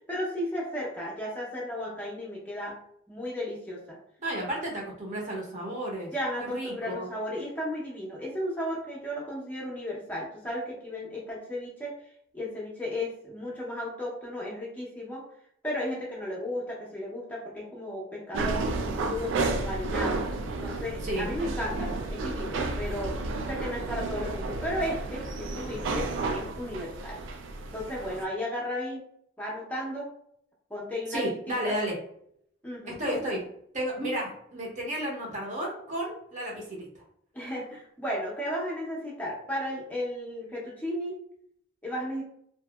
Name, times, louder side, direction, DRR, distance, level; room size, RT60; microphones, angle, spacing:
voice 1, 0.1-2.8 3.1-4.0 6.1-11.9 12.3-15.2 15.6-20.2 20.6-23.2 23.5-27.2 27.7-29.0 29.4-30.1 30.7-31.7 32.6-33.0 37.3-41.2 41.8-42.2, equal, 10° left, -5 dB, 0.5 m, -34 dB
voice 2, 4.2-6.1 6.4-7.1 21.0-21.3 31.1-31.9 32.9-33.4 33.7-36.9, right 1 dB, 40° right, -3 dB, 0.7 m, -32 dB
sound 1, 18.3-28.2, right 3 dB, 80° right, 0.3 m, -32 dB
2.7 x 2.5 x 2.2 m, 0.70 s
head